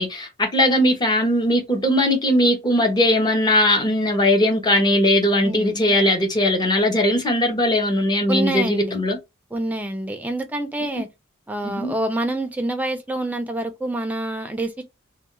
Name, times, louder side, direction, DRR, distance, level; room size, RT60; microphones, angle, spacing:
voice 1, 0.0-9.2 11.6-11.9, left 1 dB, 20° left, 0.7 m, -19 dB
voice 2, 5.4-5.9 8.3-9.0 9.5-11.1 11.5-14.8, right 1 dB, 10° right, 0.5 m, -27 dB
2.3 x 2.2 x 3.0 m
head